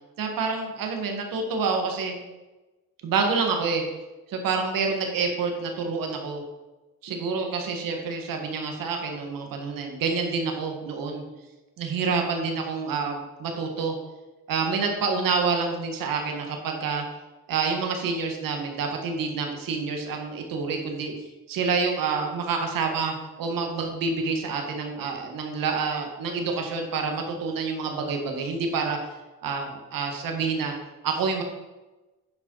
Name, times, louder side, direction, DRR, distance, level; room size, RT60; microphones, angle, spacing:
voice 1, 0.2-2.2 3.0-3.8 4.3-6.4 7.0-11.2 11.8-13.9 14.5-17.1 17.5-21.1 21.5-29.0 29.4-30.7 31.0-31.4, right 4 dB, 75° right, 3 dB, 1.8 m, -28 dB
10.5 x 5.1 x 4.7 m, 1.1 s
cardioid pair, 110°, 34 cm